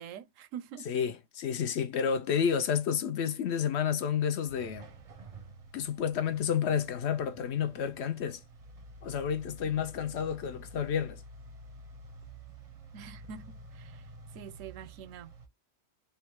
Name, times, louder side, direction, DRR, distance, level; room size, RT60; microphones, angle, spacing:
voice 1, 0.0-0.9 12.9-14.1 14.3-15.3, right 8 dB, 85° right, 1.0 m, -45 dB
voice 2, 0.9-4.9 5.7-8.4 9.0-11.2, left 7 dB, 65° left, 0.8 m, -30 dB
sound 1, 4.5-15.5, right 2 dB, 40° right, 0.5 m, -50 dB
3.6 x 2.3 x 4.4 m
omnidirectional pair, 1.3 m